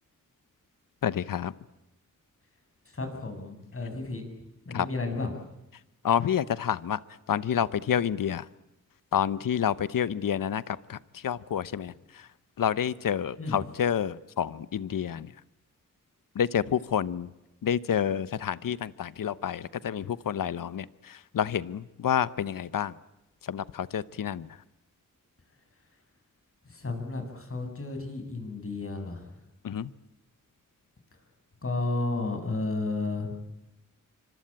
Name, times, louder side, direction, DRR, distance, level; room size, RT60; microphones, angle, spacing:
voice 1, 1.0-1.5 4.7-4.9 6.0-7.0 7.3-8.4 9.1-10.6 10.9-11.0 11.2-11.9 12.6-15.3 16.4-17.3 17.6-20.9 21.3-22.9 23.5-24.5 29.6-29.9, left 9 dB, 85° left, 17 dB, 1.0 m, -28 dB
voice 2, 2.9-4.2 4.7-5.3 13.4-13.6 26.7-29.2 31.6-33.4, left 3 dB, 45° left, 5 dB, 7.7 m, -32 dB
26.5 x 25.0 x 8.8 m, 0.91 s
wide cardioid pair, 80°, 32 cm